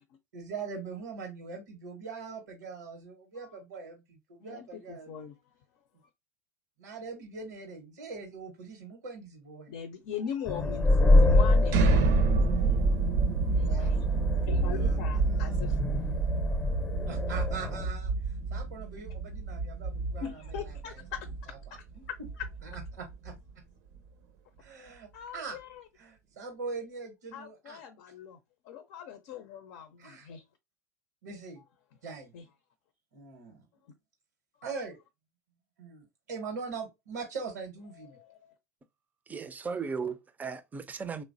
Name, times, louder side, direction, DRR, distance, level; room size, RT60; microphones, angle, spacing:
voice 1, 0.3-5.1 6.8-9.7 13.7-13.9 14.7-16.0 17.1-21.0 21.5-22.0 22.6-23.3 24.6-25.6 26.0-27.8 30.0-30.3 31.2-31.6 32.0-32.3 33.1-33.7 34.6-35.0 35.8-38.2, right 4 dB, 85° right, 1.0 m, -42 dB
voice 2, 4.4-5.4 9.7-12.3 13.4-14.0 14.5-16.0 20.2-21.3 21.7-22.5 25.1-25.8 27.3-28.4 28.6-30.4 32.3-32.5 38.0-38.5, left 8 dB, 65° left, 0.6 m, -41 dB
sound 1, 10.5-17.9, left 2 dB, 20° left, 0.7 m, -26 dB
sound 2, 11.7-23.5, right 4 dB, 65° right, 0.7 m, -29 dB
voice 3, 39.3-41.2, right 5 dB, 20° right, 0.5 m, -36 dB
3.0 x 2.1 x 2.6 m
hypercardioid pair, 95°, 9 cm